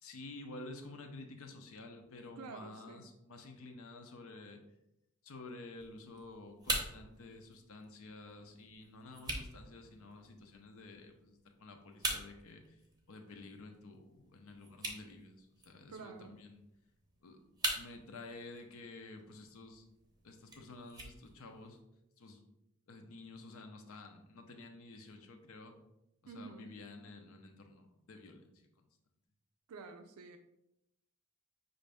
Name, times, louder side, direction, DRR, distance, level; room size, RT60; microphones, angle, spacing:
voice 1, 0.0-4.6 5.2-12.8 13.1-16.6 17.2-17.4 17.7-19.8 20.2-21.8 22.2-22.4 22.9-25.8 26.2-28.9, left 2 dB, 65° left, 5 dB, 0.6 m, -51 dB
voice 2, 2.4-3.1 15.9-16.4 26.3-26.7 29.7-30.4, right 4 dB, 80° right, 6 dB, 0.4 m, -49 dB
sound 1, 5.8-21.8, right 2 dB, 20° right, 0.7 m, -45 dB
5.4 x 2.6 x 3.3 m, 0.87 s
head